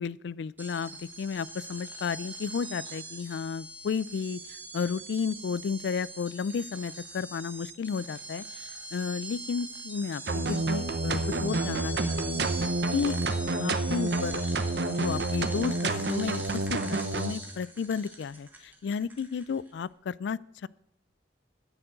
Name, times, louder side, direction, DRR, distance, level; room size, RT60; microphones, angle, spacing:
voice 1, 0.0-10.2 10.5-12.5 12.9-13.2 13.6-14.4 14.9-20.7, left 6 dB, 75° left, 21 dB, 0.3 m, -33 dB
sound 1, 0.6-19.7, right 2 dB, 10° right, 1.3 m, -42 dB
sound 2, 10.3-17.3, right 2 dB, 70° right, 0.8 m, -29 dB
9.8 x 7.0 x 7.6 m, 0.86 s
head